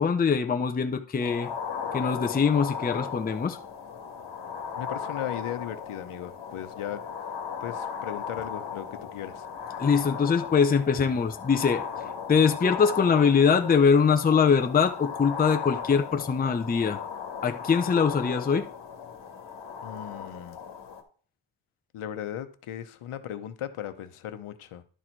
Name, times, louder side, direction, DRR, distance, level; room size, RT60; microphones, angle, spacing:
voice 1, 0.0-1.5 1.9-3.6 9.8-11.8 12.3-17.0 17.4-18.7, left 6 dB, 20° left, 0.5 m, -23 dB
sound 1, 1.2-21.0, left 6 dB, 60° left, 1.4 m, -37 dB
voice 2, 4.8-7.0 7.6-9.5 19.8-20.6 21.9-24.8, left 10 dB, 80° left, 0.9 m, -37 dB
11.0 x 4.2 x 4.5 m
wide cardioid pair, 175°, 49 cm